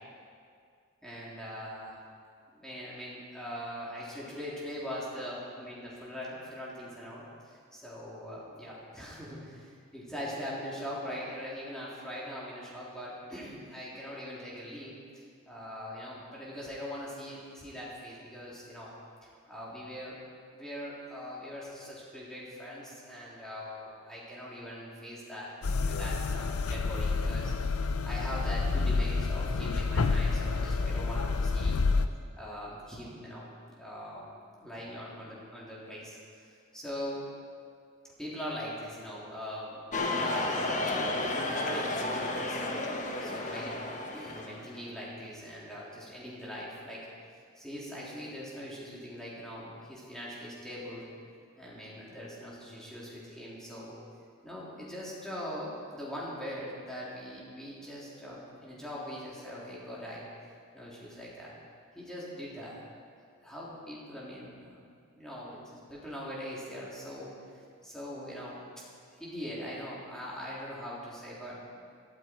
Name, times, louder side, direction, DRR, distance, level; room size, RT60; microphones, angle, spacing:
voice 1, 1.0-2.0 2.5-18.9 19.2-20.2 20.5-25.5 25.8-31.8 32.4-33.5 33.8-34.3 34.6-37.2 38.2-42.8 43.2-43.8 44.1-47.1 47.5-51.1 51.5-54.0 54.4-60.3 60.7-61.5 61.9-62.8 63.4-68.6 69.2-71.6, equal, 5° left, -7 dB, 3.4 m, -42 dB
sound 1, 25.6-32.1, left 4 dB, 90° left, 0.6 m, -29 dB
sound 2, 39.9-44.8, left 2 dB, 35° left, 1.2 m, -32 dB
17.0 x 13.0 x 4.6 m, 2.2 s
head